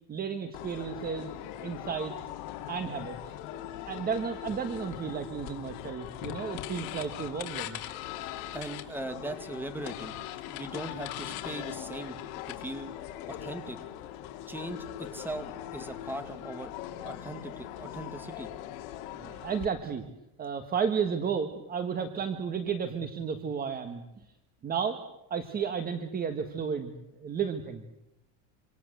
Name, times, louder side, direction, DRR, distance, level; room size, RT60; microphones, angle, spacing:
voice 1, 0.1-1.3 1.6-2.1 2.7-3.3 3.9-7.8 19.2-20.1 20.4-24.0 24.6-25.0 25.3-27.8, right 6 dB, 20° right, 7 dB, 1.6 m, -33 dB
sound 1, 0.5-19.6, left 12 dB, 65° left, 3.4 m, -40 dB
voice 2, 8.5-10.2 10.5-12.2 12.5-12.9 13.3-13.8 14.5-16.7 17.0-18.5, right 1 dB, 5° right, 8 dB, 2.3 m, -39 dB
27.0 x 26.5 x 8.0 m, 0.87 s
cardioid pair, 170°, 46 cm